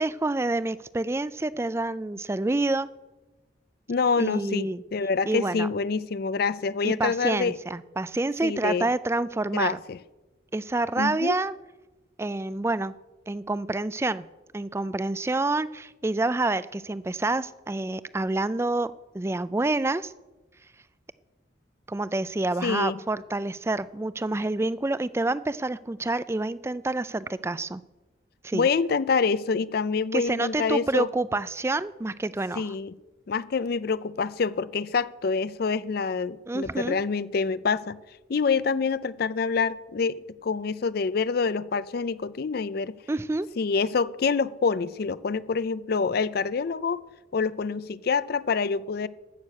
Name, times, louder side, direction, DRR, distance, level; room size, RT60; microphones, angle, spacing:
voice 1, 0.0-2.9 4.2-4.8 5.3-5.7 6.8-9.8 10.5-11.5 12.2-12.9 13.3-14.3 14.5-20.1 21.9-27.8 28.4-28.7 30.1-32.7 36.5-37.0 43.1-43.5, right 2 dB, 15° right, 17 dB, 0.3 m, -28 dB
voice 2, 3.9-7.6 8.4-8.9 9.5-10.0 11.0-11.3 22.6-23.0 28.5-31.1 32.6-33.0 33.3-38.0 38.3-43.0 43.6-47.0 47.3-49.1, left 5 dB, 50° left, 17 dB, 0.4 m, -26 dB
13.0 x 6.5 x 8.4 m, 1.1 s
head